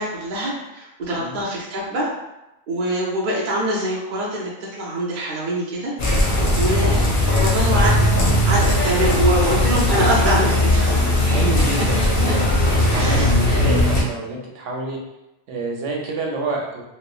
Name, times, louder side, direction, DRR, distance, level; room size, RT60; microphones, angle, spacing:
voice 1, 0.0-2.1 2.7-5.9 6.2-7.1 7.4-8.1 8.5-11.1 12.9-13.3, right 1 dB, 55° right, -5 dB, 0.6 m, -24 dB
sound 1, 6.0-14.0, left 1 dB, 50° left, 0.7 m, -18 dB
voice 2, 11.3-15.0 15.5-16.8, right 2 dB, 85° right, 0 dB, 0.9 m, -28 dB
3.1 x 2.0 x 2.3 m, 0.94 s
omnidirectional pair, 1.2 m